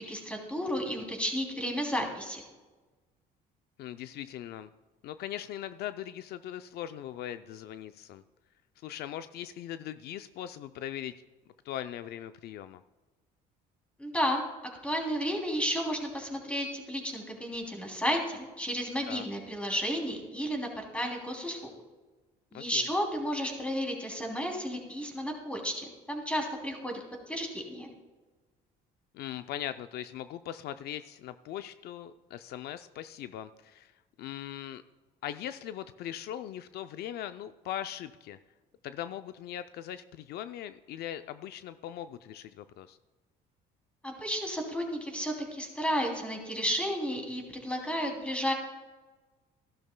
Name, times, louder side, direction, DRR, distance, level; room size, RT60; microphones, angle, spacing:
voice 1, 0.0-2.4 14.0-14.4 14.8-21.7 22.5-27.9 44.0-48.5, equal, 5° left, 1 dB, 2.9 m, -32 dB
voice 2, 3.8-4.7 5.0-8.2 8.8-11.1 11.6-12.8 19.1-19.3 22.5-22.9 29.1-33.9 34.2-34.8 35.2-38.4 38.8-43.0, left 11 dB, 70° left, 11 dB, 0.5 m, -40 dB
15.5 x 12.0 x 2.2 m, 1.2 s
cardioid pair, 110°, 17 cm